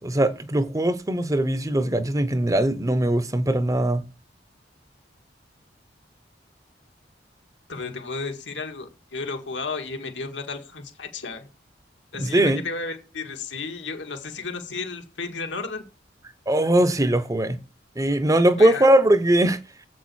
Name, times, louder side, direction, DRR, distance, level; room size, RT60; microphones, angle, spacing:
voice 1, 0.0-4.1 12.2-12.6 16.5-17.6 18.0-19.6, right 1 dB, 20° right, 0.7 m, -20 dB
voice 2, 7.7-11.5 12.1-15.8 18.6-18.9, left 4 dB, 80° left, 1.9 m, -33 dB
7.9 x 6.2 x 6.2 m
head